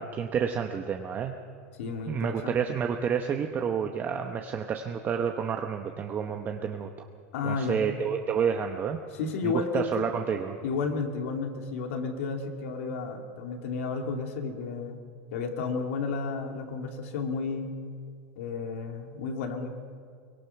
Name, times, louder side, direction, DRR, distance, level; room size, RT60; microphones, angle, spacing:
voice 1, 0.0-1.3 2.1-6.9 7.4-9.0 9.4-10.6, right 7 dB, 25° right, 4 dB, 1.0 m, -29 dB
voice 2, 1.8-2.6 7.3-7.8 9.1-10.0 10.6-15.0 15.3-17.7 18.4-19.7, left 4 dB, 80° left, 3 dB, 2.8 m, -32 dB
23.5 x 19.0 x 6.0 m, 2.1 s
supercardioid pair, 145°, 7 cm